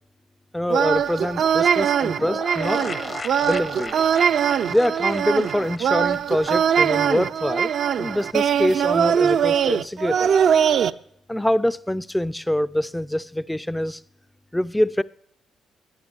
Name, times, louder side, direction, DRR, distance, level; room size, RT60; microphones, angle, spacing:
voice 1, 0.5-2.8 3.4-4.0 4.7-7.7 8.0-10.3 11.3-14.0 14.5-15.0, left 1 dB, 5° left, 0.5 m, -24 dB
sound 1, 0.7-10.9, right 8 dB, 65° right, 0.5 m, -21 dB
sound 2, 2.2-6.8 7.1-7.2 7.4-7.5, left 4 dB, 35° left, 0.8 m, -36 dB
11.5 x 9.7 x 9.9 m
cardioid pair, 90°, 0 cm